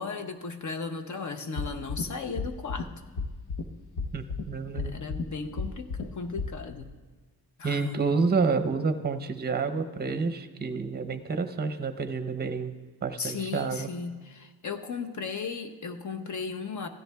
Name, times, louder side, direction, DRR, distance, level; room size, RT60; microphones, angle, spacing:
voice 1, 0.0-2.9 4.8-6.9 7.6-8.0 13.2-16.9, left 5 dB, 50° left, 6 dB, 0.7 m, -36 dB
sound 1, 1.6-2.0 2.4-2.8 3.2-3.6 4.0-4.4 4.8-5.2 5.6-6.0 6.4-6.5, left 4 dB, 85° left, 0.9 m, -31 dB
voice 2, 4.1-4.9 7.6-13.9, right 4 dB, 25° right, 8 dB, 0.6 m, -29 dB
16.0 x 13.5 x 2.3 m, 1.3 s
wide cardioid pair, 120°, 38 cm